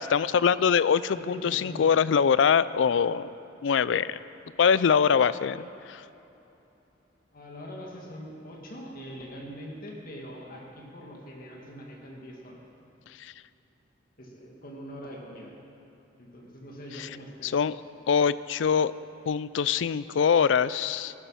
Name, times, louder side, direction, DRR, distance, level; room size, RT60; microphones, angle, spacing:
voice 1, 0.0-3.3 3.6-4.2 4.6-6.0 13.2-13.3 17.4-17.8 18.1-18.9 19.3-21.1, left 7 dB, 75° left, 17 dB, 0.4 m, -23 dB
voice 2, 1.1-2.2 7.3-12.6 14.2-15.5 16.2-17.5, equal, 50° left, -1 dB, 2.1 m, -43 dB
15.0 x 12.0 x 5.7 m, 2.9 s
head